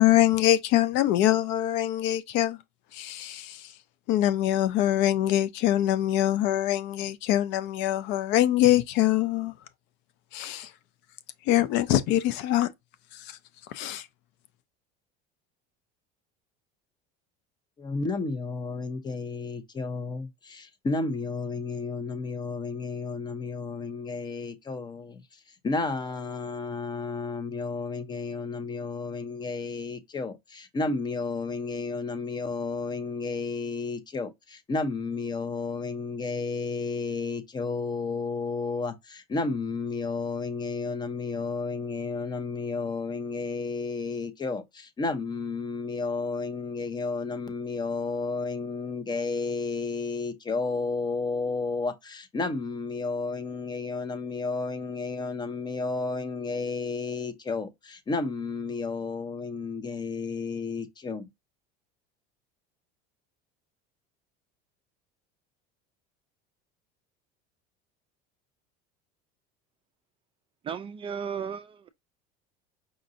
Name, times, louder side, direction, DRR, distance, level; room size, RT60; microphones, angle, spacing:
voice 1, 0.0-2.6 2.9-3.7 4.1-9.5 10.3-10.7 11.5-12.7 13.1-13.4 13.7-14.1, left 13 dB, 60° left, 0.5 m, -24 dB
voice 2, 17.8-61.3, left 4 dB, 20° left, 0.7 m, -32 dB
voice 3, 70.6-71.9, right 7 dB, 25° right, 0.4 m, -35 dB
5.1 x 2.6 x 2.5 m
supercardioid pair, 130°, 21 cm